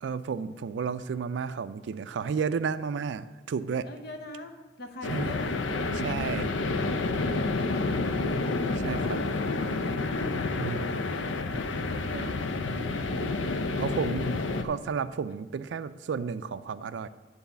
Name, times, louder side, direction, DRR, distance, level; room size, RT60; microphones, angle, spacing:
voice 1, 0.0-3.9 5.1-5.3 5.9-6.5 7.3-7.4 8.8-9.2 10.6-10.9 11.5-11.6 12.1-12.3 13.1-14.3 14.6-17.1, right 6 dB, 70° right, 14 dB, 0.3 m, -32 dB
voice 2, 3.8-5.5 5.9-6.5 7.5-8.2 10.2-10.4 11.5-12.2 13.0-13.6 13.8-14.8, left 1 dB, 55° left, 5 dB, 0.9 m, -44 dB
sound 1, 5.0-14.6, left 3 dB, 85° left, 0.5 m, -29 dB
9.5 x 4.1 x 6.8 m, 1.2 s
head